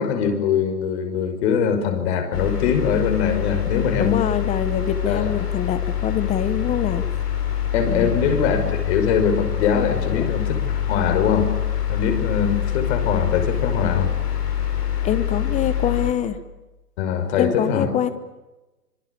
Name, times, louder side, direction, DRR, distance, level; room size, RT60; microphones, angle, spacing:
voice 1, 0.0-4.2 5.1-5.3 7.7-11.5 11.9-14.1 17.0-17.9, left 7 dB, 45° left, 6 dB, 5.9 m, -22 dB
sound 1, 2.3-16.1, left 10 dB, 75° left, 7.5 m, -25 dB
voice 2, 4.0-7.0 7.8-8.2 10.1-10.3 15.0-16.4 17.4-18.1, left 9 dB, 15° left, 13 dB, 1.0 m, -24 dB
26.0 x 25.0 x 8.7 m, 1.1 s
figure-of-eight pair, 125°, 47 cm